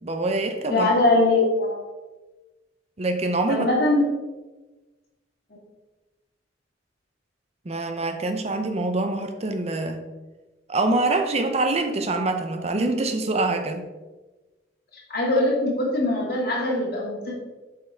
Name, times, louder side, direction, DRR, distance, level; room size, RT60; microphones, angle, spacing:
voice 1, 0.0-0.9 3.0-3.7 7.7-10.0 10.7-13.9, right 2 dB, 35° right, 6 dB, 0.6 m, -25 dB
voice 2, 0.7-1.8 3.5-4.0 14.9-17.3, left 2 dB, 55° left, -3 dB, 2.1 m, -22 dB
7.4 x 5.7 x 3.4 m, 1.2 s
head